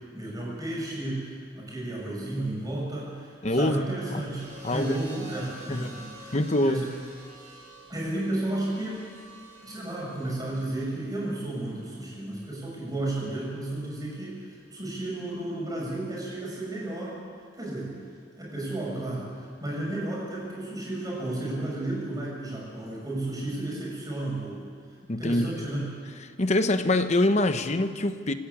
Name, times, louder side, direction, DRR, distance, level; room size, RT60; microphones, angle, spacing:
voice 1, 0.1-6.8 7.9-9.1 9.6-17.2 17.5-17.9 18.4-24.6 25.2-25.9, right 1 dB, 20° right, -4 dB, 7.8 m, -33 dB
voice 2, 3.4-3.8 4.6-5.0 5.7-6.0 6.3-6.8 25.1-25.7 26.2-28.3, left 1 dB, 40° left, 9 dB, 1.0 m, -25 dB
sound 1, 4.4-12.5 13.7-14.1, right 1 dB, 45° right, 8.0 m, -48 dB
27.5 x 13.0 x 8.6 m, 2.1 s
head